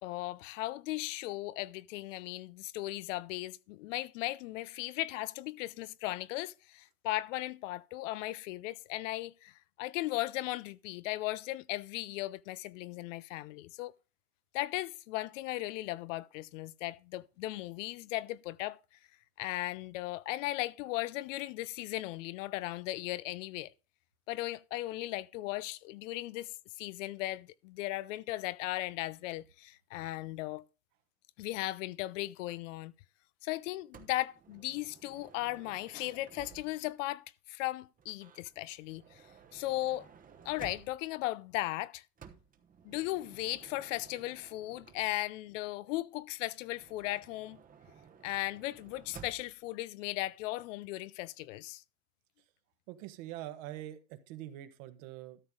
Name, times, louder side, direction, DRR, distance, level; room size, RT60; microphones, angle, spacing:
voice 1, 0.0-13.9 14.5-18.8 19.4-23.7 24.3-30.6 31.4-32.9 33.4-39.2 39.5-40.1 40.4-42.0 42.8-47.6 48.2-51.8, left 17 dB, 55° left, 0.6 m, -37 dB
Motor vehicle (road) / Sliding door, 33.9-37.0 38.0-41.2 42.2-45.5 46.7-49.7, right 7 dB, 20° right, 1.0 m, -55 dB
voice 2, 52.9-55.4, right 13 dB, 55° right, 1.5 m, -44 dB
13.0 x 6.9 x 3.7 m
hypercardioid pair, 120°, 46 cm